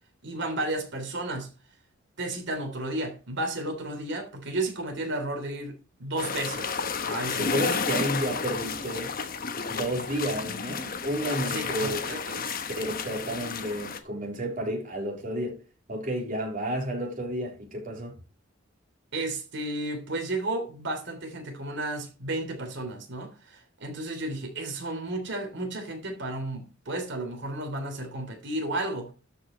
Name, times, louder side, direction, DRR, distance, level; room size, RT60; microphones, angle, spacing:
voice 1, 0.2-1.5 2.2-6.7 7.0-7.7 11.5-12.6 19.1-29.1, right 2 dB, 65° right, 3.2 m, -33 dB
sound 1, 6.2-14.0, left 5 dB, 45° left, 1.1 m, -32 dB
voice 2, 7.4-9.2 9.7-12.0 12.8-15.6 15.9-18.2, right 1 dB, 45° right, 3.6 m, -31 dB
13.0 x 5.7 x 4.4 m
head